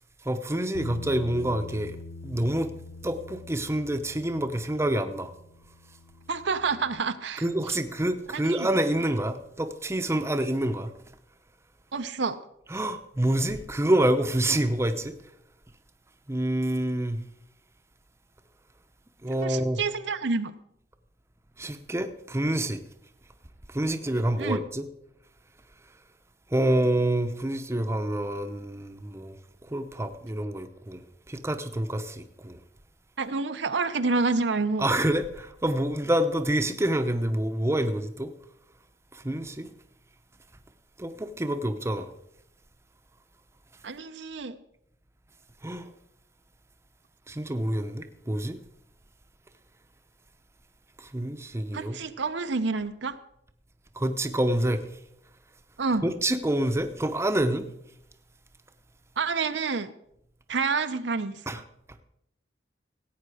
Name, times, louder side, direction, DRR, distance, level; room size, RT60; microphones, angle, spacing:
voice 1, 0.2-2.0 2.2-2.7 3.0-5.3 7.4-10.9 12.7-15.2 16.3-17.2 19.2-19.8 21.6-22.8 23.7-24.8 26.5-29.4 29.6-32.6 34.8-38.3 39.1-39.7 41.0-42.1 45.6-45.9 47.3-48.6 51.0-52.0 53.9-54.9 56.0-57.7 61.5-61.6, right 1 dB, 15° right, 0.7 m, -27 dB
Bass guitar, 0.7-7.0, left 3 dB, 85° left, 0.6 m, -44 dB
voice 2, 6.3-7.4 8.3-8.7 11.9-12.4 19.4-20.5 24.4-24.6 33.2-34.9 43.8-44.6 51.7-53.2 55.8-56.1 59.2-59.9 60.5-61.4, right 4 dB, 80° right, 0.7 m, -28 dB
16.0 x 8.8 x 4.9 m
head